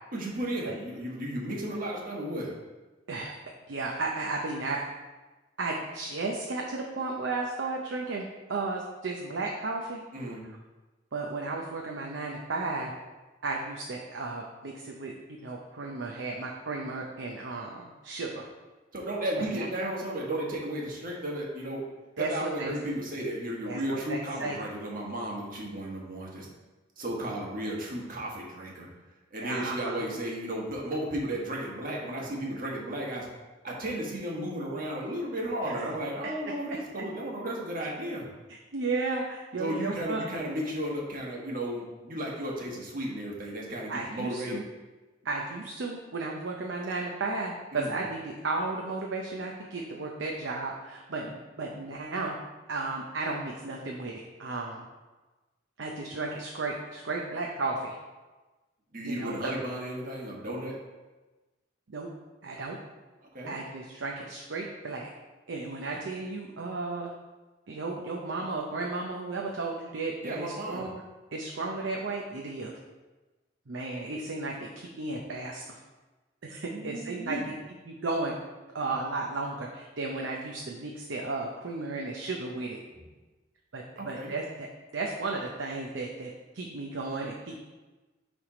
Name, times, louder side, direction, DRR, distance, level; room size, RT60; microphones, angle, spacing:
voice 1, 0.1-2.5 10.1-10.4 18.9-21.8 22.2-26.5 27.0-28.9 29.3-33.3 33.6-38.3 39.6-44.6 47.7-48.0 58.9-60.8 63.3-63.6 70.2-70.9 76.7-77.4 84.0-84.3, right 1 dB, 50° right, -2 dB, 1.4 m, -34 dB
voice 2, 3.7-4.8 5.6-10.0 11.1-12.9 13.4-18.5 19.4-19.7 22.2-22.7 23.7-24.6 29.4-30.0 35.6-35.7 38.5-40.2 43.9-44.6 45.2-52.4 52.7-54.8 55.8-58.0 59.0-59.6 61.9-62.1 62.4-62.8 63.5-65.1 65.5-67.1 67.7-71.0 71.3-72.8 73.7-75.8 76.4-77.5 77.9-78.3 78.7-82.8 83.7-84.7 84.9-87.5, right 3 dB, 85° right, -1 dB, 0.7 m, -34 dB
7.2 x 3.5 x 4.9 m, 1.2 s
head